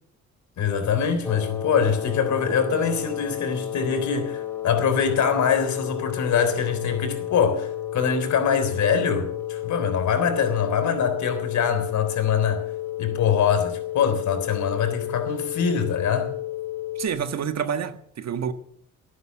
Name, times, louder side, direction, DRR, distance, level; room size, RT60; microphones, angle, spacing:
voice 1, 0.6-12.6 13.0-16.3, left 7 dB, 70° left, 3.7 m, -23 dB
sound 1, 1.2-17.1, left 11 dB, 5° left, 3.1 m, -32 dB
voice 2, 17.0-18.5, right 7 dB, 60° right, 1.5 m, -28 dB
19.0 x 9.6 x 7.3 m
cardioid pair, 90°, 30 cm